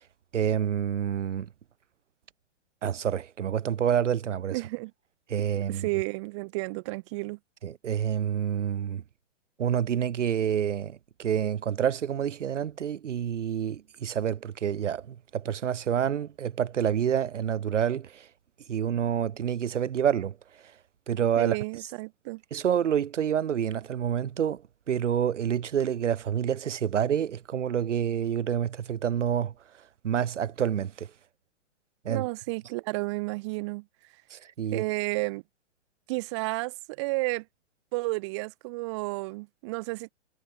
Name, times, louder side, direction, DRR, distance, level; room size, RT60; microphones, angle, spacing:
voice 1, 0.3-1.5 2.8-4.6 5.3-5.9 7.6-9.0 9.6-18.3 18.7-20.4 21.1-21.6 22.5-24.6 24.9-29.5 30.0-31.1 32.0-32.2 34.3-34.8, right 9 dB, 85° right, 2.5 m, -28 dB
voice 2, 4.5-4.9 5.7-7.4 21.4-22.4 32.1-33.8 34.7-35.4 36.1-37.4 37.9-40.1, right 25 dB, 25° right, 1.5 m, -32 dB
hypercardioid pair, 175°, 35 cm